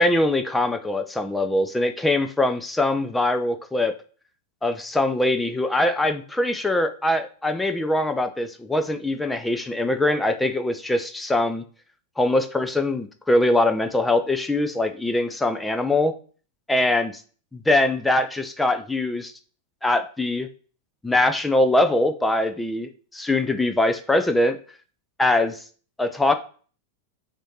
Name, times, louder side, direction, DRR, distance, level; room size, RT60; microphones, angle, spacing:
voice 1, 0.0-3.9 4.6-11.6 12.2-16.1 16.7-17.2 17.5-19.3 19.8-20.5 21.0-24.6 25.2-25.6 26.0-26.4, left 1 dB, 5° left, 8 dB, 0.4 m, -22 dB
6.1 x 2.6 x 3.0 m, 0.40 s
figure-of-eight pair, 90°, 0 cm